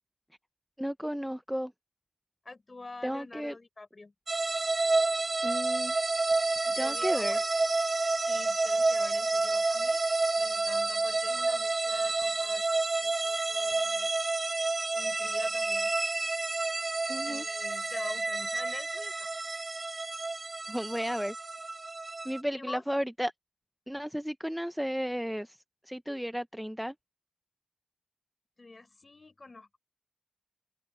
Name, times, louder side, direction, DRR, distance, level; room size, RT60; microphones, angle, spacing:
voice 1, 0.8-1.7 3.0-3.5 5.4-5.9 6.8-7.4 17.1-17.4 20.7-21.3 22.2-23.3 23.9-25.6 25.8-26.9, equal, ahead, 0.5 m, -33 dB
voice 2, 2.4-4.1 6.6-7.5 8.3-10.0 10.4-14.1 14.9-16.0 17.2-19.3 22.6-22.8 28.6-29.8, left 3 dB, 40° left, 4.1 m, -47 dB
sound 1, 4.3-22.4, right 3 dB, 40° right, 1.2 m, -29 dB
open air
wide cardioid pair, 120°, 0 cm